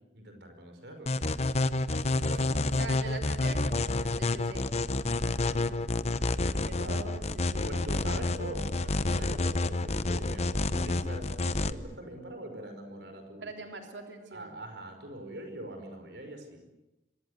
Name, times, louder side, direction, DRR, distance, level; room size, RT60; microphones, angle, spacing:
voice 1, 0.1-1.1 2.2-2.9 5.4-6.1 6.3-7.0 7.7-13.5 14.3-16.6, right 1 dB, 65° right, 6 dB, 5.3 m, -43 dB
sound 1, 1.1-11.7, left 2 dB, 35° left, 0.9 m, -29 dB
voice 2, 2.3-4.8 6.4-7.8 13.4-14.6, right 3 dB, 85° right, 3 dB, 3.4 m, -43 dB
26.0 x 22.5 x 8.1 m, 0.99 s
head